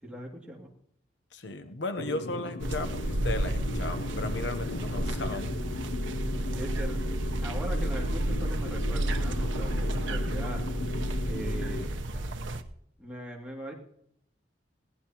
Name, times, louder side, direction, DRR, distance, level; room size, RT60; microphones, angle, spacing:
voice 1, 0.0-0.7 6.2-7.1 7.4-10.7 11.3-12.4 13.0-13.7, right 1 dB, 5° right, -2 dB, 2.5 m, -40 dB
voice 2, 1.3-5.6, left 2 dB, 65° left, 7 dB, 0.9 m, -35 dB
sound 1, 2.0-11.9, left 3 dB, 85° left, 0.6 m, -37 dB
sound 2, 2.6-12.6, right 1 dB, 85° right, 1.0 m, -31 dB
21.0 x 16.5 x 3.0 m, 0.74 s
head